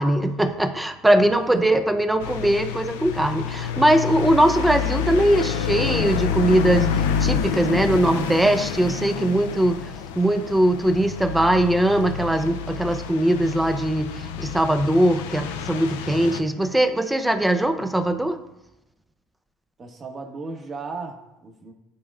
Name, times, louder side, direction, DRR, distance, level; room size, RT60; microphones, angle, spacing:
voice 1, 0.0-9.9 10.2-18.4, right 1 dB, 10° right, 8 dB, 0.7 m, -21 dB
sound 1, 2.2-16.4, left 7 dB, 85° left, 0.5 m, -28 dB
voice 2, 7.4-8.2 19.8-21.7, right 4 dB, 40° right, 2 dB, 1.7 m, -36 dB
12.0 x 4.1 x 2.5 m, 0.93 s
hypercardioid pair, 80°, 0 cm